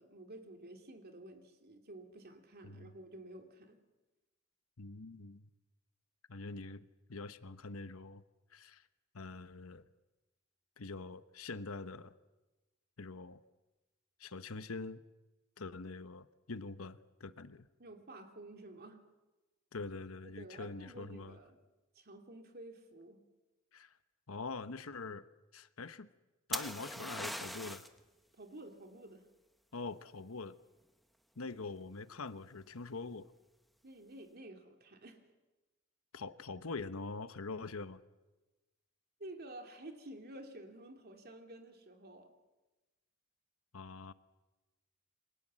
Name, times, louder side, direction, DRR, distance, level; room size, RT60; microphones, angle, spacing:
voice 1, 0.0-3.8 17.8-19.0 20.2-21.6 21.9-23.2 28.3-29.3 33.8-35.2 39.2-42.3, right 1 dB, 50° right, 5 dB, 2.7 m, -51 dB
voice 2, 4.8-5.5 6.3-8.2 8.5-8.8 9.1-9.8 10.8-12.1 13.0-13.4 14.2-15.0 15.6-17.7 19.7-21.4 23.7-24.0 24.3-25.2 25.5-26.1 26.5-27.9 29.7-30.5 31.4-33.3 36.1-38.0 43.7-44.1, left 3 dB, 90° left, 13 dB, 1.0 m, -44 dB
sound 1, 26.5-28.0 31.7-32.1, equal, ahead, 1.2 m, -40 dB
28.0 x 23.5 x 7.5 m, 1.1 s
head